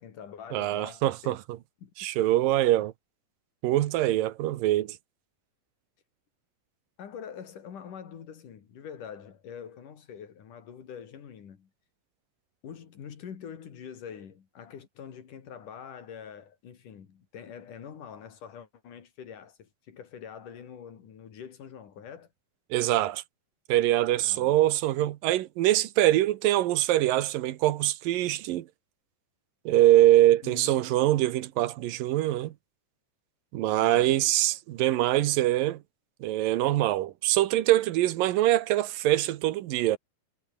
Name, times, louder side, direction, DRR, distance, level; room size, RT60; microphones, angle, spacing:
voice 1, 0.0-1.4 1.8-1.9 7.0-11.7 12.6-22.3 24.2-24.6 30.4-31.0 33.8-34.2, left 8 dB, 65° left, 4.1 m, -45 dB
voice 2, 0.5-1.4 2.0-2.9 3.6-5.0 22.7-23.2 23.7-28.7 29.7-32.5 33.5-35.8 36.2-40.0, right 14 dB, 80° right, 2.7 m, -24 dB
omnidirectional pair, 4.0 m